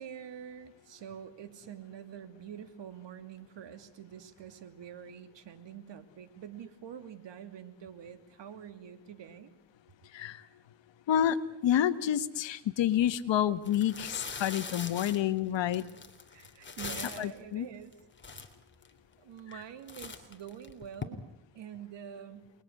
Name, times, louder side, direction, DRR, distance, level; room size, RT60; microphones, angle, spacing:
voice 1, 0.0-9.5 16.3-17.9 19.2-21.2 21.5-22.5, right 9 dB, 70° right, 10 dB, 2.9 m, -46 dB
voice 2, 10.1-10.4 11.1-15.8 17.2-17.7, left 10 dB, 70° left, 13 dB, 1.7 m, -29 dB
sound 1, 13.0-13.2 13.6-17.4 17.9-18.0 18.2-18.9 19.4-19.6 19.9-21.0, left 4 dB, 25° left, 3.3 m, -42 dB
28.5 x 21.0 x 9.6 m, 0.83 s
cardioid pair, 105°, 45 cm